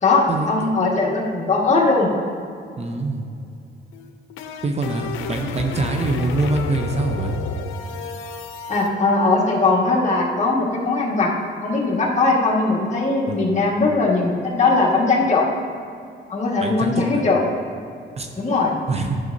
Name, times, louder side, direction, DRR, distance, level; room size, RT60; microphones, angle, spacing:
voice 1, 0.0-2.1 8.7-11.3 11.6-15.5 16.3-17.4 18.4-18.7, left 3 dB, 35° left, -3 dB, 1.6 m, -19 dB
voice 2, 2.8-3.3 4.6-7.3 13.3-13.4 16.6-17.2 18.2-18.3 18.9-19.2, right 3 dB, 35° right, 4 dB, 0.6 m, -24 dB
sound 1, 3.9-8.9, left 4 dB, 85° left, 0.6 m, -31 dB
11.0 x 6.2 x 2.6 m, 2.4 s
cardioid pair, 90°, 20 cm